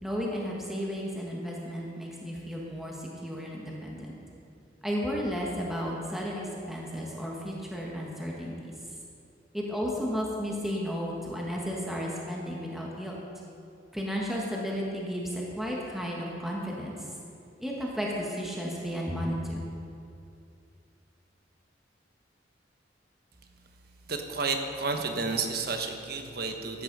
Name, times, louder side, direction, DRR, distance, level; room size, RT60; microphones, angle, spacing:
voice 1, 0.0-4.1 4.8-6.4 6.7-8.7 9.5-13.1 13.9-17.0 17.6-19.6, equal, ahead, -3 dB, 1.5 m, -33 dB
voice 2, 24.1-26.8, right 4 dB, 55° right, 5 dB, 1.1 m, -31 dB
13.5 x 9.4 x 5.4 m, 2.5 s
head